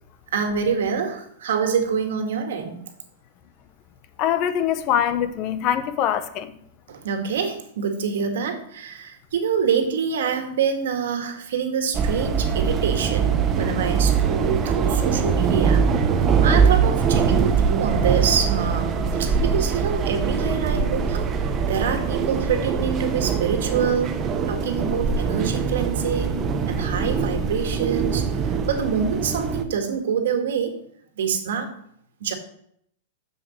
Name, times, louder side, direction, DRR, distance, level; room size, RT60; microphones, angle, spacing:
voice 1, 0.3-2.8 6.9-15.8 16.1-21.2 21.7-24.1 24.5-30.8 31.2-31.7 32.2-32.3, right 6 dB, 80° right, 1.9 m, -26 dB
voice 2, 4.2-6.6, left 10 dB, 35° left, 0.8 m, -23 dB
sound 1, 11.9-29.6, right 6 dB, 20° right, 0.9 m, -22 dB
7.2 x 6.9 x 6.6 m
supercardioid pair, 155°, 0 cm